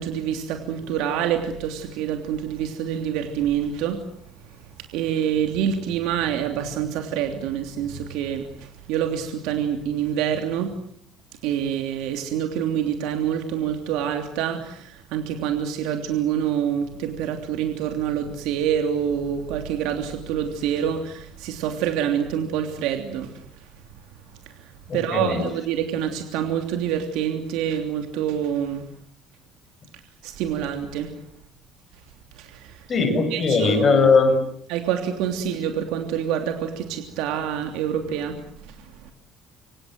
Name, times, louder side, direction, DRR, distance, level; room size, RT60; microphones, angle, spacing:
voice 1, 0.0-4.0 4.9-10.8 11.4-23.7 24.5-28.9 30.2-31.1 32.3-32.9 33.3-33.7 34.7-39.1, right 9 dB, 80° right, 5 dB, 3.1 m, -26 dB
voice 2, 24.9-25.5 32.9-34.3, left 4 dB, 25° left, 7 dB, 6.8 m, -19 dB
26.5 x 26.0 x 8.0 m, 0.66 s
cardioid pair, 165°, 0 cm